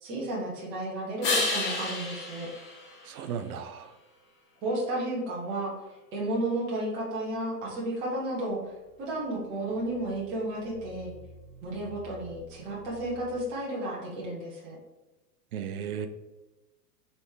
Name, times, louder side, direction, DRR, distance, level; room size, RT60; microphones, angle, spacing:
voice 1, 0.0-2.5 4.6-5.7 6.1-8.6 9.0-11.1 11.6-14.8, right 1 dB, 10° right, -4 dB, 0.3 m, -32 dB
sound 1, 1.2-3.8 9.5-13.5, left 2 dB, 25° left, 0.7 m, -35 dB
voice 2, 3.1-3.9 15.5-16.1, right 8 dB, 65° right, 9 dB, 0.6 m, -35 dB
3.3 x 3.0 x 4.6 m, 1.0 s
hypercardioid pair, 120°, 48 cm